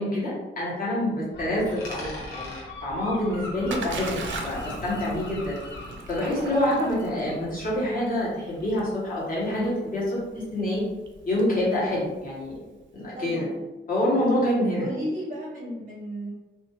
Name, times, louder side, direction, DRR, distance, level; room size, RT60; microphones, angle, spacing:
voice 1, 0.0-5.6 6.1-10.8 11.3-12.6 12.9-13.5 13.9-14.9, left 1 dB, 45° left, -6 dB, 1.0 m, -26 dB
Gull seagull, 1.3-8.8, left 1 dB, 60° left, 0.6 m, -40 dB
Coin (dropping), 1.6-4.4 4.7-6.7, left 2 dB, 90° left, 0.9 m, -45 dB
Splash splatter, 3.0-12.8, right 4 dB, 65° right, 0.4 m, -41 dB
voice 2, 6.2-6.9 13.1-13.6 14.2-14.3 14.6-16.3, equal, 25° right, -5 dB, 0.6 m, -34 dB
2.5 x 2.3 x 2.9 m, 1.1 s
wide cardioid pair, 160°, 21 cm